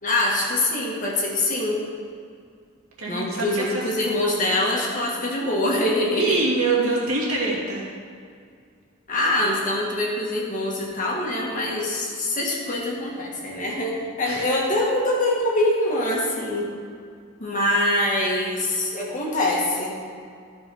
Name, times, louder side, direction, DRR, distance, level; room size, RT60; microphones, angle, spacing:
voice 1, 0.0-1.8 3.1-6.4 9.1-16.7 17.4-20.0, left 1 dB, 35° left, -3 dB, 1.8 m, -24 dB
voice 2, 3.0-3.8 6.1-7.9 14.3-14.5, right 3 dB, 75° right, -4 dB, 2.4 m, -24 dB
13.0 x 5.4 x 4.9 m, 2.3 s
head